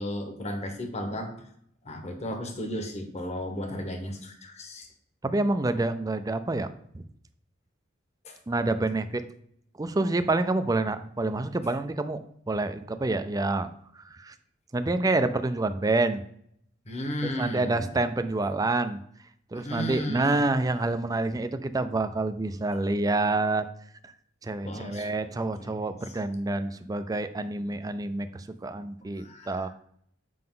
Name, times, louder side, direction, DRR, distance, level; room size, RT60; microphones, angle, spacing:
voice 1, 0.0-1.3 1.8-4.9 8.2-8.4 16.9-17.8 19.5-20.4 24.6-25.1 25.6-25.9 29.2-29.7, equal, 35° left, 5 dB, 1.2 m, -34 dB
voice 2, 5.2-6.7 6.9-7.0 8.5-9.2 9.8-12.2 12.5-13.7 14.0-14.3 14.7-16.2 17.4-19.0 19.5-23.6 24.0-24.1 24.4-29.7, right 2 dB, 20° right, 10 dB, 0.4 m, -27 dB
7.7 x 5.2 x 3.8 m, 0.68 s
head